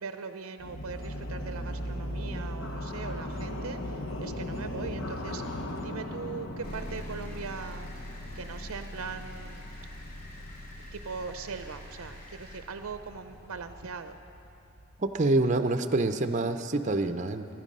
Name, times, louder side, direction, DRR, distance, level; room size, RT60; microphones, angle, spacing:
voice 1, 0.0-7.9 8.3-9.7 10.4-10.5 10.9-14.2, right 5 dB, 80° right, 8 dB, 0.6 m, -40 dB
sound 1, 0.6-15.5, left 1 dB, 60° left, 1.1 m, -39 dB
sound 2, 6.6-14.2, equal, 90° left, 1.7 m, -45 dB
sound 3, 6.6-12.6, left 1 dB, 40° left, 2.8 m, -52 dB
voice 2, 15.0-17.5, right 2 dB, 35° right, 8 dB, 0.5 m, -26 dB
23.0 x 11.5 x 5.4 m, 2.8 s
head